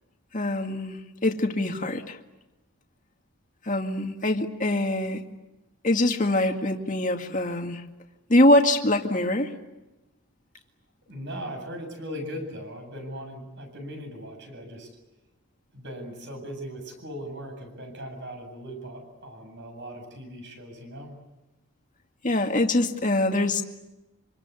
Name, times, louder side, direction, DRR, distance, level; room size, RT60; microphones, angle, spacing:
voice 1, 0.3-2.2 3.6-5.2 5.8-7.8 8.3-9.5 22.2-23.6, left 1 dB, 35° left, 4 dB, 2.2 m, -23 dB
voice 2, 11.1-14.9 15.7-21.2, equal, 55° right, 5 dB, 8.0 m, -39 dB
27.0 x 26.0 x 8.4 m, 1.0 s
head